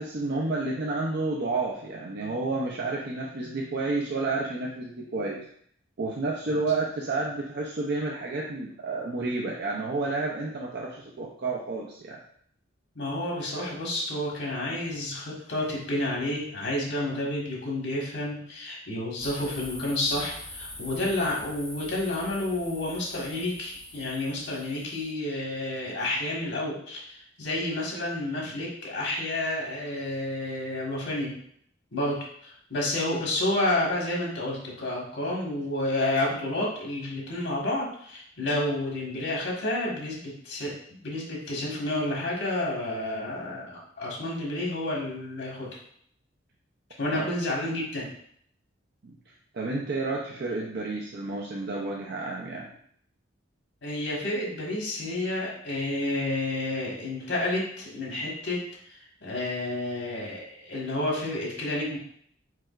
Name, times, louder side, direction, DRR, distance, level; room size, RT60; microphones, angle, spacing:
voice 1, 0.0-5.4 6.0-12.2 47.1-47.3 49.0-49.2 49.5-52.7, right 3 dB, 60° right, -3 dB, 0.6 m, -30 dB
voice 2, 12.9-31.3 31.9-40.7 41.0-45.7 47.0-48.1 53.8-62.0, left 1 dB, 70° left, -3 dB, 1.5 m, -30 dB
sound 1, 19.2-25.1, left 1 dB, 5° left, 0.7 m, -43 dB
4.9 x 4.4 x 2.4 m, 0.64 s
head